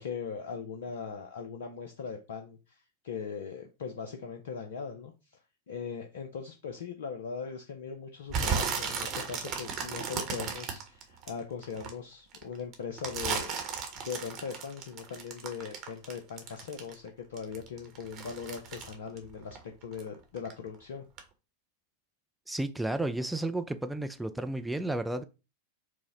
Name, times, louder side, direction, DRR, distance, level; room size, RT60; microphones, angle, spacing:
voice 1, 0.0-5.4 5.7-13.6 14.0-21.0, left 6 dB, 60° left, 0.5 m, -40 dB
Bones crunch human bone, 8.3-11.9 12.3-17.1 17.4-20.1 20.4-20.8 21.2-21.3, right 6 dB, 35° right, 0.9 m, -35 dB
voice 2, 22.5-25.2, right 2 dB, 5° right, 0.3 m, -32 dB
4.6 x 2.1 x 3.9 m
figure-of-eight pair, 90°, 0 cm